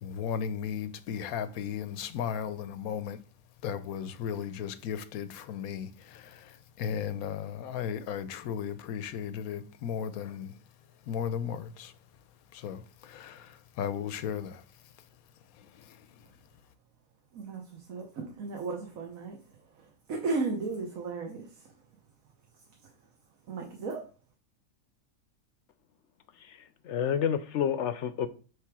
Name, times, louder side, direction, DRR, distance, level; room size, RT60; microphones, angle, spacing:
voice 1, 0.0-3.2 3.6-10.5 11.1-11.9 12.5-14.6 15.6-16.1, left 8 dB, 80° left, 1.1 m, -36 dB
voice 2, 17.3-21.7 22.8-22.9 23.5-24.0, right 3 dB, 70° right, 1.4 m, -35 dB
voice 3, 26.4-28.3, left 8 dB, 65° left, 0.8 m, -30 dB
7.6 x 3.5 x 4.8 m
omnidirectional pair, 1.5 m